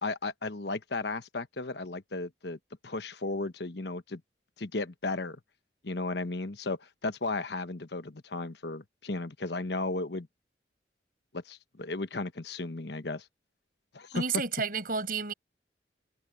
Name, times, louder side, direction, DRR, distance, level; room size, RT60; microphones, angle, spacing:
voice 1, 0.0-2.6 2.8-4.2 4.6-5.4 5.8-10.3 11.3-13.3 13.9-14.2, left 3 dB, 70° left, 1.2 m, -35 dB
voice 2, 14.1-15.3, right 5 dB, 55° right, 6.3 m, -31 dB
head